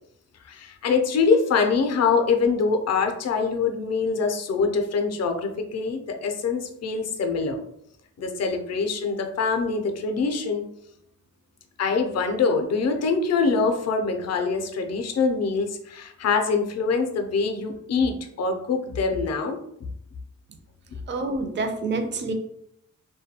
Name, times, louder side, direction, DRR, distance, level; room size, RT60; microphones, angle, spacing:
voice 1, 0.4-7.6 8.2-10.6 11.8-19.6, left 4 dB, 50° left, 5 dB, 0.4 m, -24 dB
voice 2, 21.1-22.3, right 3 dB, 35° right, 5 dB, 0.4 m, -27 dB
2.2 x 2.2 x 2.7 m, 0.74 s
cardioid pair, 95°, 33 cm